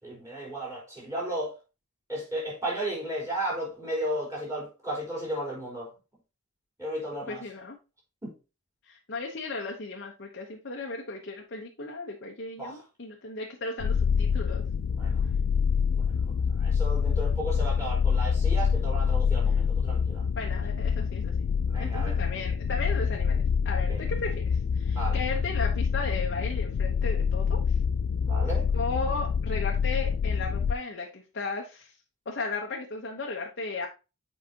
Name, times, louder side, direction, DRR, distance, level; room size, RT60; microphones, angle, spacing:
voice 1, 0.0-1.5 2.1-5.9 6.8-7.4 8.2-8.3 12.6-12.8 14.9-15.2 15.9-20.2 21.7-22.2 23.9-24.1 24.9-25.2 28.2-28.7, right 1 dB, 15° right, 3.8 m, -34 dB
voice 2, 7.3-7.8 8.9-14.6 20.3-21.3 21.8-27.8 28.7-31.9 32.3-33.9, left 3 dB, 50° left, 0.9 m, -35 dB
sound 1, 13.8-30.7, left 6 dB, 70° left, 0.4 m, -26 dB
7.5 x 5.0 x 2.9 m
head